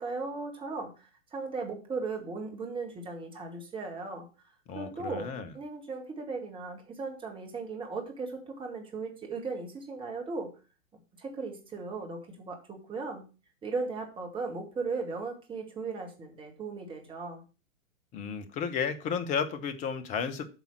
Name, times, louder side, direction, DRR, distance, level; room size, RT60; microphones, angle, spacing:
voice 1, 0.0-4.3 4.7-10.5 11.2-13.2 13.6-17.4, right 4 dB, 10° right, 2.1 m, -37 dB
voice 2, 4.7-5.5 18.1-20.4, left 6 dB, 20° left, 0.9 m, -33 dB
9.1 x 5.5 x 6.1 m
figure-of-eight pair, 110°, 40 cm